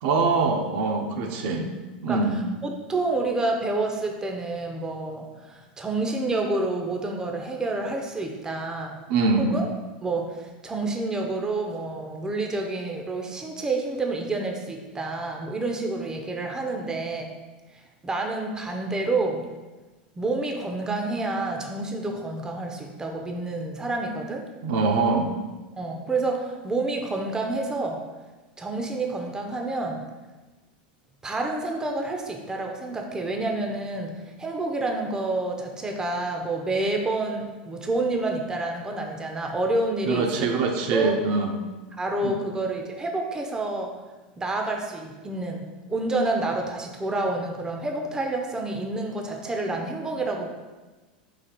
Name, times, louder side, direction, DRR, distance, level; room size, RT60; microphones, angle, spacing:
voice 1, 0.0-1.6 2.0-2.4 9.1-9.5 24.6-25.3 40.1-41.5 42.2-42.4, right 4 dB, 60° right, 2 dB, 0.7 m, -23 dB
voice 2, 2.6-9.0 9.4-9.7 10.0-17.3 18.0-19.5 20.2-24.4 25.8-28.0 28.6-30.1 31.2-40.5 40.9-41.1 42.0-43.9 44.4-50.5, right 2 dB, 15° right, 2 dB, 0.6 m, -28 dB
4.0 x 2.8 x 4.4 m, 1.2 s
hypercardioid pair, 105°, 5 cm